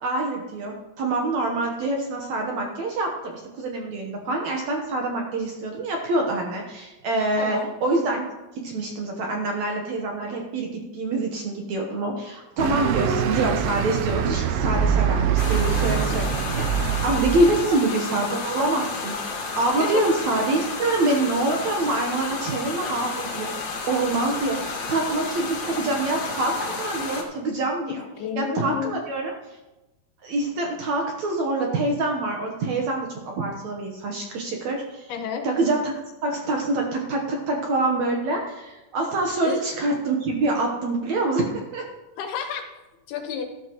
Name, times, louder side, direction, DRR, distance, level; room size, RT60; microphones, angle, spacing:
voice 1, 0.0-8.2 8.6-28.0 28.4-29.3 30.2-35.1 35.4-35.9 36.2-41.9, right 2 dB, 60° right, 1 dB, 2.0 m, -26 dB
voice 2, 7.4-7.7 17.4-17.5 19.8-20.1 28.2-29.0 35.1-35.5 39.4-39.6 42.2-42.8 43.1-43.4, left 7 dB, 80° left, 5 dB, 3.2 m, -31 dB
sound 1, 12.6-17.7, right 7 dB, 85° right, 2.7 m, -24 dB
sound 2, 15.4-27.2, left 4 dB, 55° left, 2.7 m, -31 dB
13.0 x 12.5 x 3.1 m, 1.0 s
omnidirectional pair, 4.5 m